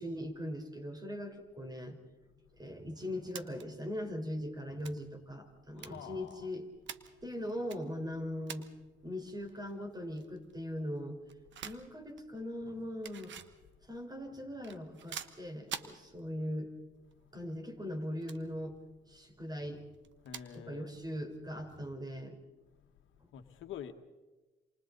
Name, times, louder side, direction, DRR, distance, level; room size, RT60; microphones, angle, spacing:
voice 1, 0.0-2.0 2.6-6.7 7.2-8.7 9.0-11.2 11.6-13.4 13.9-16.7 17.3-18.7 19.1-19.9 20.5-22.4, equal, 20° right, 4.3 m, -40 dB
sound 1, 2.5-22.1, right 8 dB, 70° right, 1.3 m, -52 dB
voice 2, 5.7-6.5 17.2-17.3 20.2-21.0 22.8-22.9 23.3-23.9, left 9 dB, 80° left, 1.5 m, -47 dB
28.0 x 27.5 x 4.0 m
cardioid pair, 90°, 20 cm